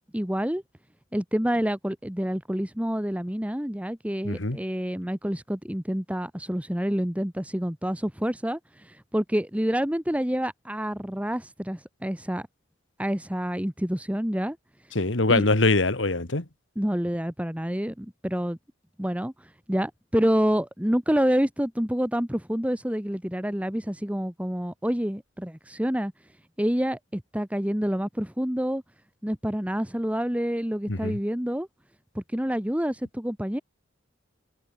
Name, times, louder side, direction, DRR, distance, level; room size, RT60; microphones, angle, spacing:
voice 1, 0.1-0.6 1.1-12.5 13.0-14.6 15.3-15.5 16.8-18.6 19.0-26.1 26.6-28.8 29.2-31.7 32.2-33.6, equal, 5° right, 1.7 m, -28 dB
voice 2, 4.2-4.6 15.0-16.4 30.9-31.2, left 2 dB, 75° left, 2.1 m, -23 dB
head